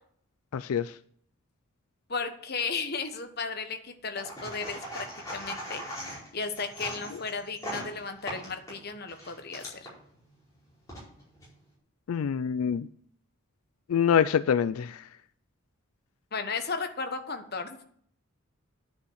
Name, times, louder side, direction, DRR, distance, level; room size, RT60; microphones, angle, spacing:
voice 1, 0.5-0.9 12.1-12.9 13.9-15.0, left 7 dB, 85° left, 14 dB, 0.4 m, -25 dB
voice 2, 2.1-5.8 6.3-9.9 16.3-17.8, left 4 dB, 45° left, 7 dB, 1.1 m, -35 dB
sound 1, 4.2-9.9 10.7-11.5, equal, 15° left, 4.8 m, -40 dB
10.5 x 5.8 x 8.0 m, 0.62 s
head